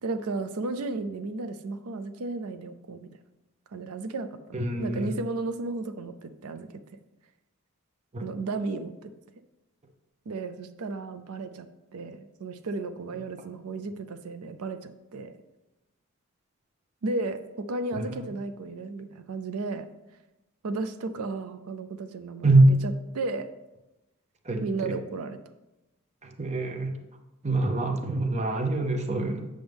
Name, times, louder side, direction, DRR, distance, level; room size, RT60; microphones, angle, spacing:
voice 1, 0.0-3.1 3.7-6.7 8.2-9.1 10.3-11.7 11.9-15.3 17.0-19.9 20.6-23.5 24.6-25.4, right 3 dB, 90° right, 10 dB, 0.5 m, -34 dB
voice 2, 4.5-5.1 8.1-8.3 18.0-18.1 22.4-22.8 24.5-24.9 26.4-26.9 27.4-29.5, right 2 dB, 30° right, 5 dB, 0.8 m, -24 dB
7.9 x 6.4 x 3.5 m, 0.97 s
head